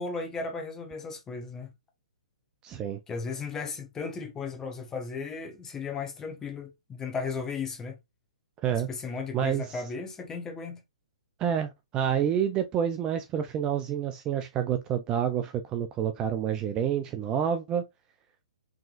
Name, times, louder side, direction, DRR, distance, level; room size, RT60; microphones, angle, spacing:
voice 1, 0.0-1.7 3.1-8.0 8.7-10.8, left 4 dB, 15° left, 1.4 m, -35 dB
voice 2, 2.6-3.0 8.6-8.9 9.3-9.8 11.4-17.8, right 9 dB, 20° right, 0.5 m, -28 dB
4.9 x 3.7 x 2.5 m
figure-of-eight pair, 130°, 4 cm